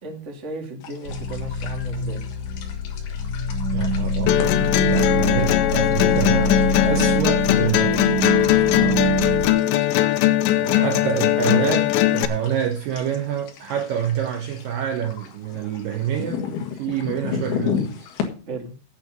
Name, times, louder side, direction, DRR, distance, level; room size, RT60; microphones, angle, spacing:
voice 1, 0.0-2.2 8.7-9.0 10.7-10.9 18.5-18.7, right 2 dB, 25° right, 1.6 m, -35 dB
sound 1, 0.8-18.3, left 8 dB, 60° left, 3.3 m, -36 dB
sound 2, 1.0-9.5, right 1 dB, 45° left, 4.1 m, -25 dB
voice 2, 3.7-8.1 10.5-16.4 16.7-18.1, right 9 dB, 90° right, 1.9 m, -27 dB
sound 3, 4.3-12.3, left 14 dB, 80° left, 2.8 m, -20 dB
9.1 x 8.4 x 6.6 m
omnidirectional pair, 5.5 m